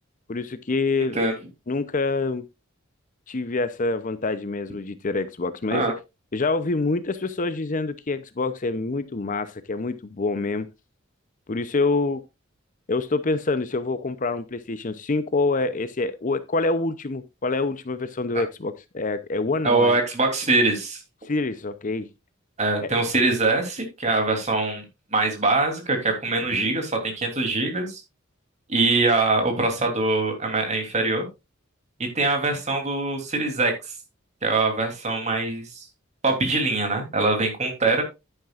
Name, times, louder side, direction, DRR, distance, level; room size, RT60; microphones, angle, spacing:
voice 1, 0.3-1.2 1.7-2.4 3.3-5.9 6.3-10.7 11.5-12.2 12.9-20.0 21.2-22.1 22.8-22.9 26.5-26.7, left 3 dB, 40° left, 0.7 m, -26 dB
voice 2, 19.6-21.0 22.6-24.8 25.1-28.0 28.7-31.3 32.1-33.7 34.4-35.7 36.2-38.0, right 3 dB, 35° right, 3.1 m, -23 dB
10.5 x 9.8 x 2.5 m
head